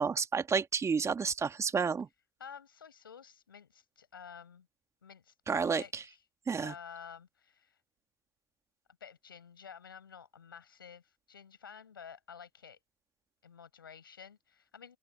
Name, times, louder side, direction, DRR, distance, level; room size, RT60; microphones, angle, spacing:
voice 1, 0.0-2.1 5.5-6.0 6.5-6.7, right 5 dB, 25° right, 2.1 m, -30 dB
voice 2, 2.4-4.7 5.0-6.2 6.5-7.8 9.0-12.8 13.4-15.0, left 7 dB, 85° left, 5.8 m, -51 dB
open air
hypercardioid pair, 75°, 11 cm